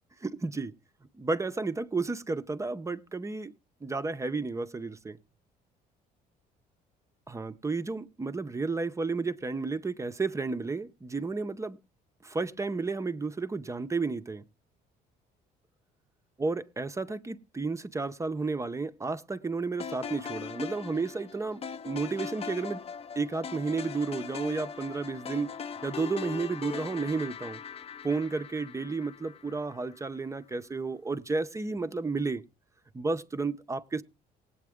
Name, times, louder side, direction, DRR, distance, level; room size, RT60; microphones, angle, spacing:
voice 1, 0.2-0.7 1.2-3.5 3.8-5.2 7.3-11.8 12.2-14.4 16.4-22.8 23.2-25.5 25.8-27.6 28.0-32.4 32.9-34.0, right 3 dB, 15° right, 0.7 m, -32 dB
sound 1, 19.8-30.1, left 6 dB, 35° left, 0.7 m, -40 dB
18.5 x 8.5 x 3.6 m
cardioid pair, 110°, 17 cm